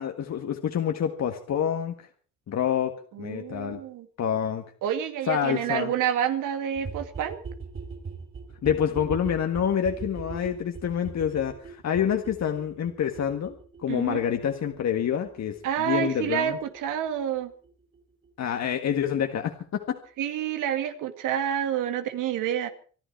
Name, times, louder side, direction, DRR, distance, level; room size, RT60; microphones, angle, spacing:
voice 1, 0.0-1.9 2.5-2.9 3.2-3.8 4.2-4.6 5.3-5.9 8.6-13.5 13.8-16.6 18.4-20.0, left 8 dB, 60° left, 5 dB, 1.8 m, -27 dB
voice 2, 3.1-4.1 4.8-7.4 13.9-14.3 15.6-17.5 20.2-22.7, right 10 dB, 90° right, 8 dB, 2.3 m, -28 dB
sound 1, 6.8-18.3 18.5-18.6 18.8-18.9 19.1-19.2 19.4-19.5 19.7-19.8 20.0-20.1, right 4 dB, 45° right, 4.8 m, -41 dB
25.5 x 11.5 x 4.6 m, 0.42 s
cardioid pair, 90°, 31 cm